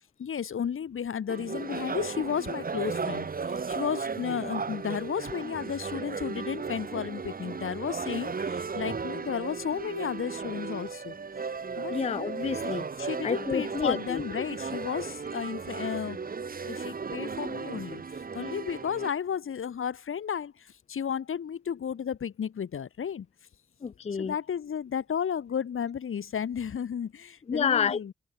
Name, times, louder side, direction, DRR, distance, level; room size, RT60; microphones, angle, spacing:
voice 1, 0.2-11.2 11.8-12.0 12.6-16.2 16.7-18.0 18.3-23.3 24.1-28.1, left 8 dB, 85° left, 2.7 m, -33 dB
sound 1, 1.3-19.1, right 5 dB, 45° right, 2.2 m, -35 dB
voice 2, 11.9-12.9 13.2-14.5 23.8-24.3 27.5-28.1, left 6 dB, 30° left, 0.5 m, -29 dB
open air
wide cardioid pair, 130°, 21 cm